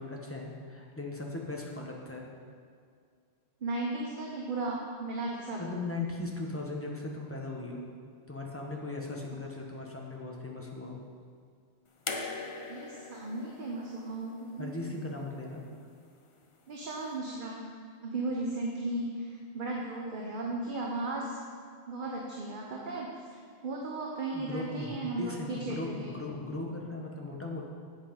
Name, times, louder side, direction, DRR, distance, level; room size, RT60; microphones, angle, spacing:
voice 1, 0.0-2.3 5.6-7.8 8.3-11.0 14.6-15.6 24.3-27.6, left 2 dB, 10° left, -1 dB, 1.1 m, -38 dB
voice 2, 3.6-5.6 12.6-14.7 16.7-17.6 18.0-21.4 21.9-23.3 23.6-26.1, right 2 dB, 50° right, -2 dB, 1.1 m, -35 dB
sound 1, 12.1-15.2 16.4-16.5, left 3 dB, 35° left, 0.6 m, -41 dB
8.2 x 7.9 x 5.3 m, 2.2 s
omnidirectional pair, 1.1 m